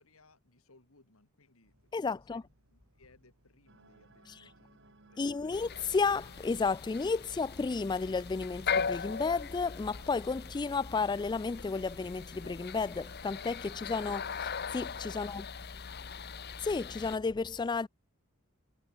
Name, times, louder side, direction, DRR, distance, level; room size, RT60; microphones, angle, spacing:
voice 1, 0.0-5.7 15.1-16.3, left 2 dB, 75° left, 2.9 m, -64 dB
sound 1, 1.6-15.7, right 1 dB, 80° right, 4.9 m, -71 dB
voice 2, 1.9-2.4 4.3-4.4 5.2-15.4 16.6-17.9, left 4 dB, 20° left, 0.3 m, -32 dB
sound 2, 3.7-14.5, right 2 dB, 55° right, 7.6 m, -61 dB
sound 3, 5.5-17.2, left 6 dB, 50° left, 1.1 m, -39 dB
head